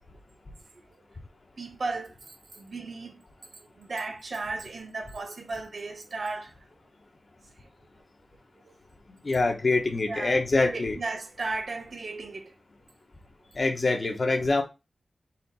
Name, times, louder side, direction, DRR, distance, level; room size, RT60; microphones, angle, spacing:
voice 1, 1.6-2.1 2.5-3.2 3.8-6.5 10.1-12.5, right 3 dB, 60° right, 0.8 m, -35 dB
voice 2, 9.1-11.0 13.5-14.6, left 3 dB, 45° left, 0.9 m, -25 dB
4.2 x 2.6 x 4.1 m
wide cardioid pair, 105°, 0 cm